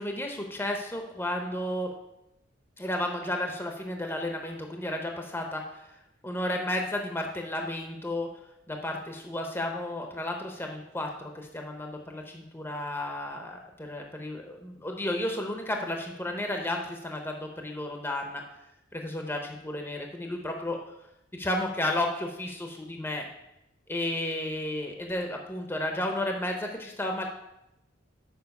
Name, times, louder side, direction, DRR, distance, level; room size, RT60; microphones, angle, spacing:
voice 1, 0.0-1.9 2.8-6.0 6.2-8.3 8.7-18.4 18.9-20.9 21.3-23.3 23.9-27.3, left 1 dB, 10° left, 2 dB, 0.7 m, -33 dB
7.0 x 5.1 x 5.3 m, 0.88 s
head